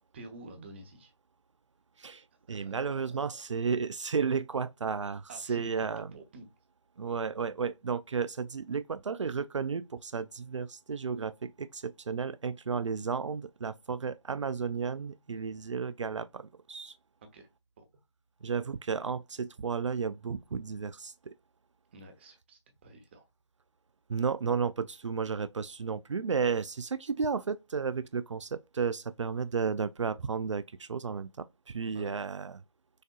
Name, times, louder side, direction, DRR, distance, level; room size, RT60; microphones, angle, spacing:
voice 1, 0.1-1.1 2.5-3.4 5.3-6.5 17.3-17.5 17.8-17.9 21.9-23.3 31.9-32.1, right 2 dB, 25° right, 0.9 m, -49 dB
voice 2, 2.0-6.1 7.0-16.9 18.4-21.3 24.1-32.5, right 5 dB, 80° right, 0.4 m, -33 dB
6.3 x 2.6 x 2.4 m
figure-of-eight pair, 160°, 15 cm